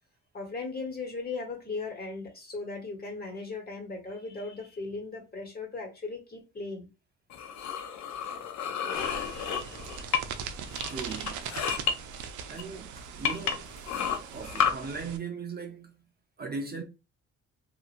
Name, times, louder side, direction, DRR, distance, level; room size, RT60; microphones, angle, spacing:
voice 1, 0.3-6.9, left 3 dB, 30° left, 1.2 m, -37 dB
sound 1, 7.3-10.4 10.7-11.9 12.6-12.7 13.2-14.7, left 7 dB, 65° left, 0.6 m, -31 dB
sound 2, 8.9-15.2, right 7 dB, 75° right, 0.5 m, -40 dB
voice 2, 10.9-11.5 12.5-13.7 14.2-16.1 16.4-16.8, right 4 dB, 35° right, 0.6 m, -38 dB
2.8 x 2.5 x 2.5 m
cardioid pair, 90°, 30 cm